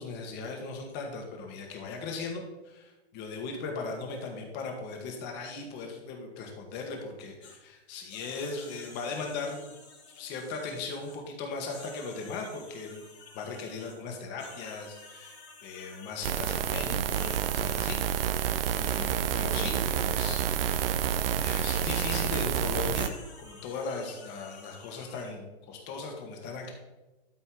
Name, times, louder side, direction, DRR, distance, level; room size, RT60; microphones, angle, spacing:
voice 1, 0.0-9.7 10.2-13.0 13.3-15.4 15.6-18.0 18.7-23.1 23.4-26.7, left 4 dB, 35° left, 2 dB, 2.1 m, -38 dB
sound 1, 7.4-7.6 8.1-11.2 11.6-14.0 14.4-19.8 21.6-22.5 22.9-25.3, left 4 dB, 75° left, 3.4 m, -51 dB
sound 2, 16.2-23.1, right 9 dB, 60° right, 0.7 m, -29 dB
12.5 x 4.3 x 4.8 m, 1.1 s
hypercardioid pair, 125°, 32 cm